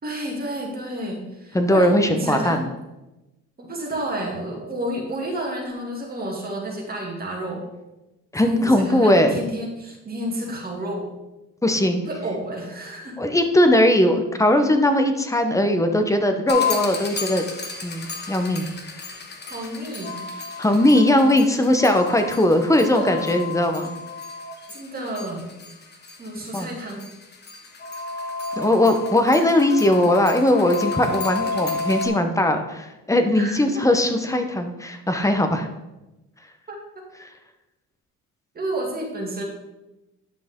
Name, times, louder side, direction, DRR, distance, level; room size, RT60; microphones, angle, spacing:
voice 1, 0.0-2.6 3.6-7.7 8.4-11.1 12.1-13.2 19.5-20.2 22.8-23.3 24.7-25.5 26.2-27.1 33.3-33.8 36.7-36.8 38.5-39.4, right 1 dB, 30° right, -1 dB, 2.3 m, -30 dB
voice 2, 1.5-2.7 8.3-9.4 11.6-12.0 13.2-17.4 17.8-18.7 20.6-23.9 26.5-26.7 28.6-35.7 37.2-37.3, left 1 dB, 10° left, 6 dB, 0.9 m, -19 dB
sound 1, 16.5-32.1, left 4 dB, 35° left, 1.3 m, -31 dB
10.5 x 6.0 x 3.7 m, 1.0 s
cardioid pair, 105°, 30 cm